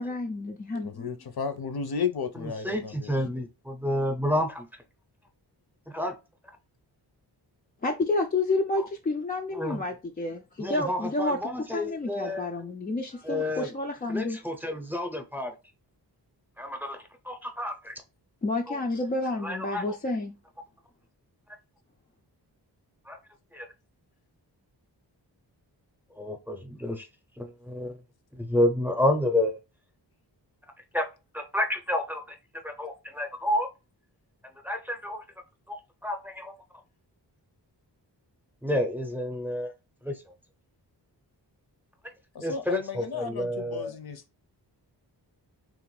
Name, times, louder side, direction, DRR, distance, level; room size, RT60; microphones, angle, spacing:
voice 1, 0.0-1.1 7.8-11.4 11.7-14.4 18.4-20.3, left 2 dB, 25° left, 0.3 m, -30 dB
voice 2, 0.8-3.1 42.3-44.2, left 6 dB, 60° left, 0.6 m, -33 dB
voice 3, 2.3-4.7 5.9-6.1 8.8-8.9 9.5-9.8 10.6-12.5 13.2-13.7 14.1-15.5 16.6-17.9 18.7-18.8 19.4-19.9 23.1-23.2 23.5-23.7 26.2-27.1 27.4-28.0 28.3-29.6 30.9-31.1 31.3-32.4 32.6-33.7 34.6-35.2 35.7-36.5 38.6-39.7 40.0-40.1 42.4-44.0, left 1 dB, 5° right, 0.7 m, -30 dB
3.1 x 2.5 x 3.1 m
wide cardioid pair, 80°, 42 cm